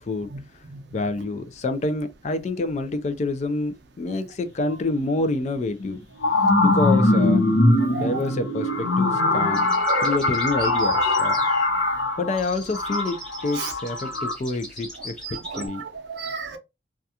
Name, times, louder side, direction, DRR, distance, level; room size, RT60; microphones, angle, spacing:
voice 1, 0.9-6.0 6.6-7.4 8.0-9.7 10.0-11.5 12.2-15.2 15.6-15.8, left 2 dB, 35° left, 0.3 m, -27 dB
sound 1, 5.0-5.1 5.8-14.3, left 2 dB, 80° left, 0.9 m, -21 dB
voice 2, 9.3-10.2 11.4-11.5 13.6-13.7 15.4-16.6, right 4 dB, 60° right, 0.5 m, -33 dB
sound 2, 9.5-12.0 12.3-15.6, right 1 dB, 5° left, 1.0 m, -39 dB
2.3 x 2.3 x 2.7 m
head